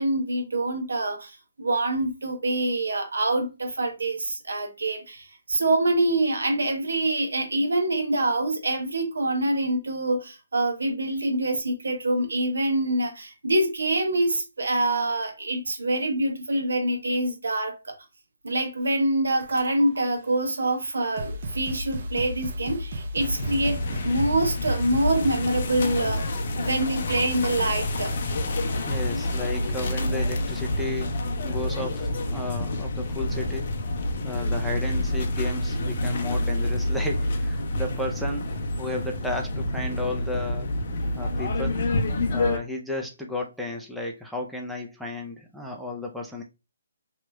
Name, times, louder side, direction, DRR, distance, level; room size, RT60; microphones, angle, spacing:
voice 1, 0.0-18.0 18.4-26.3 26.6-28.1, right 1 dB, 85° right, 1.0 m, -25 dB
sound 1, 19.4-20.0 20.8-20.9 21.2-25.4, equal, 45° right, 0.6 m, -34 dB
sound 2, 23.2-42.6, left 1 dB, 50° left, 0.6 m, -28 dB
voice 2, 28.9-31.1 31.4-33.7 34.2-40.7 41.1-41.8 42.3-46.4, left 2 dB, ahead, 0.4 m, -33 dB
3.0 x 2.9 x 2.2 m
hypercardioid pair, 155°, 0 cm